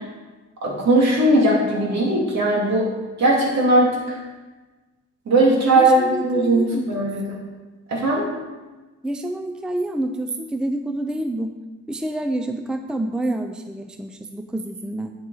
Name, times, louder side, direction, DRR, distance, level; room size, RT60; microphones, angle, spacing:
voice 1, 0.6-2.9 3.2-4.2 5.3-7.4 7.9-8.2, right 1 dB, 60° right, -2 dB, 2.8 m, -19 dB
voice 2, 5.7-6.9 9.0-11.5 11.9-15.1, right 1 dB, 5° right, 6 dB, 0.6 m, -28 dB
9.0 x 7.5 x 4.1 m, 1.2 s
cardioid pair, 90°, 30 cm